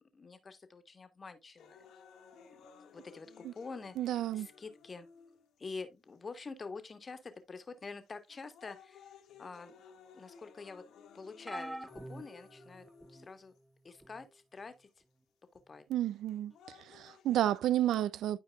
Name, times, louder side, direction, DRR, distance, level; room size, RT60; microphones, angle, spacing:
voice 1, 0.1-1.9 2.9-5.1 5.6-9.1 9.4-9.7 10.1-10.9 11.1-11.8 12.1-13.5 13.8-14.9 15.7-15.8, left 4 dB, 35° left, 1.5 m, -47 dB
sound 1, 1.6-5.6 6.3-6.4 7.3-7.6 8.1-13.6 14.6-14.7 16.1-17.6, left 6 dB, 85° left, 2.4 m, -58 dB
voice 2, 4.0-4.5 15.9-16.5 16.9-18.4, right 12 dB, 80° right, 0.4 m, -31 dB
sound 2, 11.5-13.3 14.0-14.3 15.6-15.7, right 1 dB, 10° right, 0.7 m, -45 dB
12.5 x 4.6 x 2.4 m
cardioid pair, 90°, 0 cm